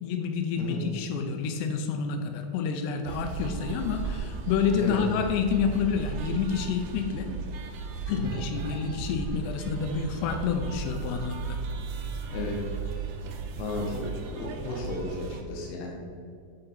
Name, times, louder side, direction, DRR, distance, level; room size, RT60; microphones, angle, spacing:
voice 1, 0.0-7.3 8.1-11.6, left 6 dB, 90° left, 5 dB, 2.7 m, -29 dB
sound 1, 3.1-15.4, right 5 dB, 80° right, 2.1 m, -36 dB
voice 2, 13.6-14.0 14.3-16.1, left 3 dB, 75° left, -2 dB, 2.3 m, -34 dB
10.5 x 3.9 x 4.2 m, 2.3 s
omnidirectional pair, 4.7 m